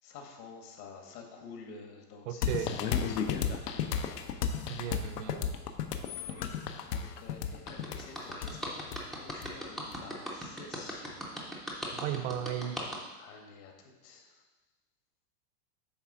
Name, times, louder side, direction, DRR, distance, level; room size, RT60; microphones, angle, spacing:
voice 1, 0.0-4.0 6.3-6.6 6.9-11.5 11.8-12.3 13.2-14.4, left 4 dB, 70° left, 2 dB, 1.9 m, -50 dB
voice 2, 2.3-2.8 4.7-5.5 11.9-12.8, right 10 dB, 50° right, 10 dB, 0.6 m, -35 dB
sound 1, 2.4-10.0, left 7 dB, 90° left, 0.8 m, -33 dB
sound 2, 7.7-13.0, equal, ahead, 0.4 m, -38 dB
8.6 x 3.4 x 6.0 m, 1.2 s
supercardioid pair, 145°, 47 cm